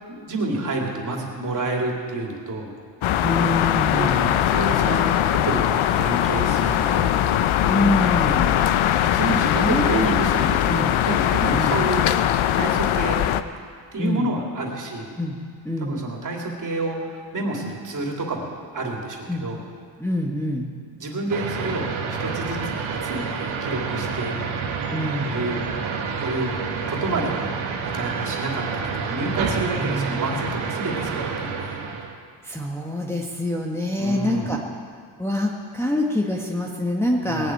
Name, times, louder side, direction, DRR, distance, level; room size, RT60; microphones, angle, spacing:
voice 1, 0.1-2.7 4.0-4.1 4.4-7.2 9.1-12.0 12.5-13.2 13.9-15.1 15.8-19.6 21.0-24.4 25.2-25.6 26.2-27.5 27.8-31.8 34.0-34.5 37.2-37.5, right 2 dB, 40° right, 0 dB, 2.9 m, -29 dB
sound 1, 3.0-13.4, left 11 dB, 80° left, 0.8 m, -21 dB
voice 2, 3.2-4.4 7.7-8.7 9.5-10.0 10.7-10.9 11.5-11.8 14.0-14.3 15.2-15.4 15.6-16.0 19.3-19.5 20.0-20.7 24.9-25.4 29.8-30.6 32.4-34.6 35.2-37.5, left 1 dB, 5° left, -2 dB, 1.3 m, -25 dB
sound 2, 21.3-32.1, right 5 dB, 85° right, 2.0 m, -28 dB
19.5 x 7.9 x 9.1 m, 2.2 s
cardioid pair, 125°, 47 cm